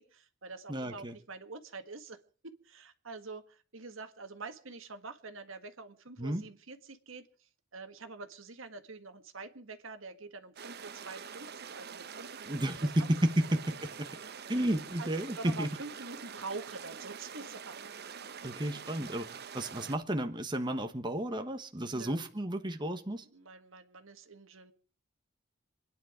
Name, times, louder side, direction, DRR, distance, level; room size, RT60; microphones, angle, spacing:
voice 1, 0.0-13.1 14.4-14.7 15.0-15.1 15.4-17.9 21.9-22.2 23.1-24.7, right 3 dB, 70° right, 8 dB, 1.8 m, -46 dB
voice 2, 0.7-1.1 6.2-6.4 12.5-13.9 14.5-15.7 18.4-19.3 19.5-23.2, right 1 dB, 20° right, 6 dB, 1.2 m, -32 dB
sound 1, 10.6-20.0, right 6 dB, 55° right, 0.9 m, -45 dB
27.5 x 10.5 x 5.0 m, 0.40 s
head